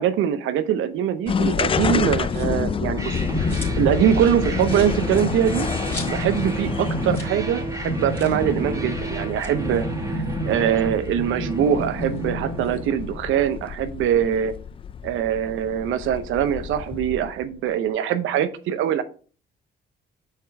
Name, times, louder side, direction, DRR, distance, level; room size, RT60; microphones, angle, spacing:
voice 1, 0.0-3.1 3.4-5.7 6.1-14.5 15.0-19.0, right 9 dB, 85° right, 0.8 m, -23 dB
sound 1, 1.3-17.4, left 6 dB, 30° left, 0.4 m, -29 dB
sound 2, 2.2-2.7 3.1-4.0 4.3-4.4 4.6-6.5 6.8-6.9 7.1-7.4 7.7-7.8 8.1-8.5 9.2-10.9 11.4-12.8, left 1 dB, 10° left, 2.8 m, -41 dB
sound 3, 3.0-13.5, right 1 dB, 15° right, 1.8 m, -29 dB
6.6 x 4.5 x 4.7 m
cardioid pair, 90°, 20 cm